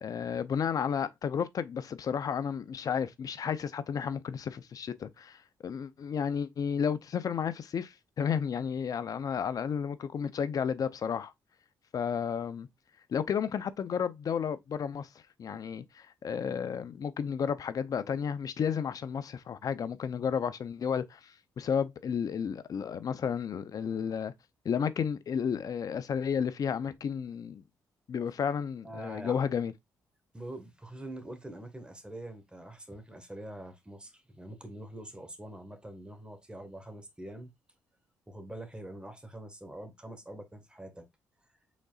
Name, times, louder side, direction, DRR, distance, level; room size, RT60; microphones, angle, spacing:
voice 1, 0.0-11.3 11.9-12.7 13.1-15.1 15.4-24.3 24.6-27.6 28.1-29.7, left 7 dB, 55° left, 0.6 m, -32 dB
voice 2, 28.8-29.5 30.3-37.5 38.3-41.1, right 1 dB, 15° right, 1.6 m, -44 dB
5.1 x 3.9 x 2.4 m
supercardioid pair, 65°, 7 cm